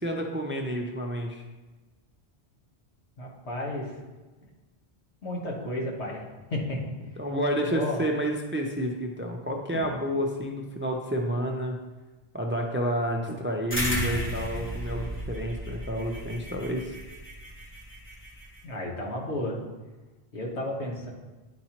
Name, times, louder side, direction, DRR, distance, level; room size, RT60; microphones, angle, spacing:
voice 1, 0.0-1.4 7.2-11.8 12.3-17.0, equal, 20° right, 2 dB, 0.3 m, -30 dB
voice 2, 3.2-3.9 5.2-6.2 6.5-6.8 7.7-8.0 9.7-9.8 18.6-19.6 20.3-21.1, left 1 dB, 85° left, -2 dB, 1.5 m, -32 dB
sound 1, 13.7-18.6, equal, 10° left, 1.1 m, -34 dB
10.0 x 4.2 x 2.9 m, 1.2 s
omnidirectional pair, 1.1 m